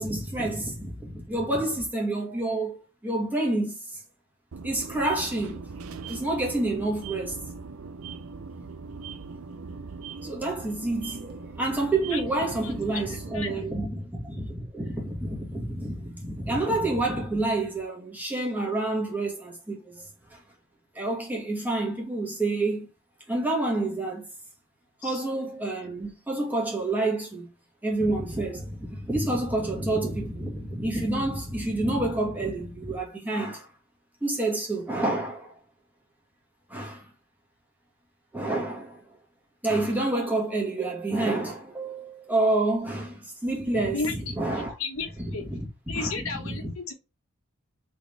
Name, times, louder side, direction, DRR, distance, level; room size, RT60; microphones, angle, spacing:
voice 1, 0.0-3.8 4.6-5.6 6.1-7.4 10.2-20.0 20.3-20.4 20.9-22.9 23.3-24.3 25.0-27.5 27.8-33.7 34.2-35.5 36.7-37.1 38.3-39.0 39.6-44.7 45.2-45.6 45.9-46.7, right 2 dB, 10° right, 1.8 m, -28 dB
sound 1, 4.5-13.6, right 4 dB, 90° right, 0.6 m, -40 dB
voice 2, 12.6-13.5 25.0-25.2 43.9-45.1 45.3-45.4 45.9-46.9, left 4 dB, 80° left, 1.1 m, -34 dB
4.0 x 3.6 x 3.4 m
head